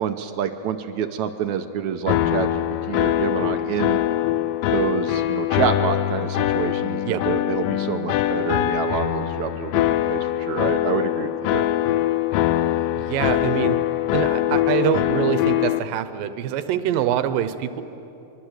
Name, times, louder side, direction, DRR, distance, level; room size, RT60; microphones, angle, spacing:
voice 1, 0.0-4.0 4.7-11.6, right 8 dB, 70° right, 8 dB, 2.0 m, -27 dB
sound 1, 2.1-15.8, left 13 dB, 80° left, 2.4 m, -23 dB
voice 2, 12.9-13.8 14.1-17.8, right 10 dB, 90° right, 11 dB, 2.7 m, -24 dB
25.0 x 23.0 x 8.0 m, 3.0 s
omnidirectional pair, 3.9 m